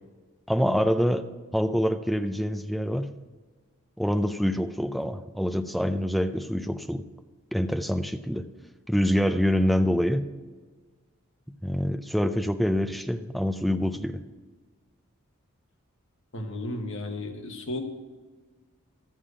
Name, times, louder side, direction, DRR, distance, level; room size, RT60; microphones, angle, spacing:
voice 1, 0.5-3.1 4.0-7.1 7.5-8.5 8.9-10.3 11.6-14.2, equal, ahead, 8 dB, 0.5 m, -26 dB
voice 2, 16.3-17.9, left 2 dB, 60° left, 4 dB, 1.4 m, -34 dB
13.0 x 7.3 x 4.9 m, 1.4 s
head